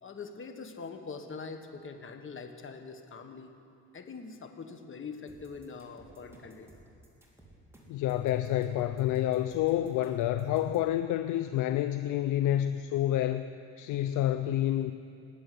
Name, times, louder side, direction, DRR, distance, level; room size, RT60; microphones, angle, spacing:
voice 1, 0.0-3.5 3.9-6.7, left 4 dB, 40° left, 6 dB, 1.5 m, -43 dB
sound 1, 5.3-10.9, right 1 dB, 10° right, 3.4 m, -56 dB
voice 2, 7.9-14.9, left 12 dB, 85° left, 10 dB, 0.6 m, -28 dB
19.5 x 7.8 x 9.5 m, 2.5 s
cardioid pair, 90°, 30 cm